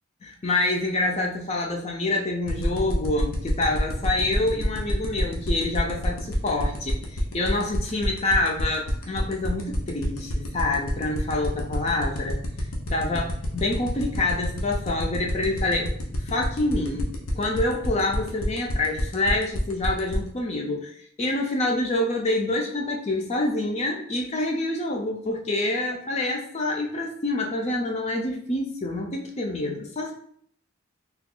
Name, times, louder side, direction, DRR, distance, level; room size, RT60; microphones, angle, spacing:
voice 1, 0.2-12.4 12.9-16.0 16.2-30.1, left 2 dB, 30° left, 0 dB, 0.4 m, -27 dB
sound 1, 2.5-20.2, left 2 dB, 90° left, 0.7 m, -33 dB
2.9 x 2.3 x 3.7 m, 0.62 s
head